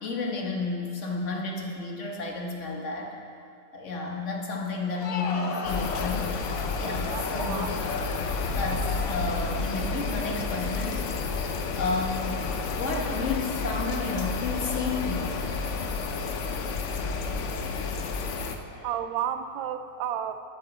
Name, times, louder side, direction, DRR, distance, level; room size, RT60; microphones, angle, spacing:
voice 1, 0.0-3.1 3.7-6.3 6.8-7.7 8.6-11.1 11.8-12.5 12.7-15.4 18.7-18.9, left 3 dB, 40° left, 0 dB, 1.4 m, -31 dB
Crowd, 4.7-10.6, left 4 dB, 60° left, 1.1 m, -36 dB
sound 1, 5.6-18.6, left 4 dB, 75° left, 0.6 m, -31 dB
voice 2, 7.1-7.7 18.8-20.4, right 10 dB, 80° right, 10 dB, 1.4 m, -32 dB
14.0 x 8.2 x 4.0 m, 2.4 s
omnidirectional pair, 2.1 m